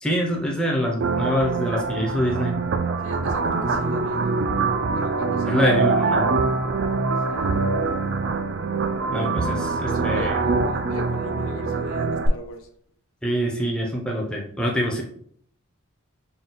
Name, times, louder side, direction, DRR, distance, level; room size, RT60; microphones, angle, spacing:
voice 1, 0.0-2.5 5.5-6.3 9.1-10.3 13.2-15.0, equal, 5° left, -1 dB, 0.5 m, -25 dB
sound 1, 1.0-12.3, right 4 dB, 50° right, 0.3 m, -24 dB
voice 2, 3.0-4.3 4.9-5.8 7.3-7.5 9.3-12.7, left 2 dB, 65° left, 5 dB, 0.6 m, -39 dB
3.7 x 2.3 x 4.1 m, 0.63 s
head